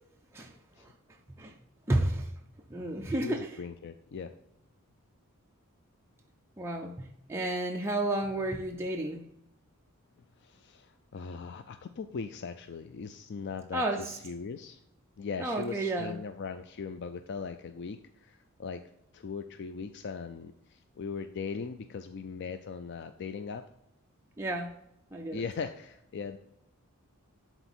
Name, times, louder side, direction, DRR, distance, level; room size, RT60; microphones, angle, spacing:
voice 1, 1.9-2.3 2.7-3.5 6.6-9.3 13.7-14.2 15.4-16.2 24.4-24.7 25.1-25.4, right 1 dB, 10° right, 1 dB, 0.5 m, -31 dB
voice 2, 3.1-4.4 10.4-14.8 15.2-18.8 19.1-23.6 25.3-26.4, left 5 dB, 50° left, 9 dB, 0.4 m, -39 dB
11.0 x 4.0 x 4.3 m, 0.80 s
head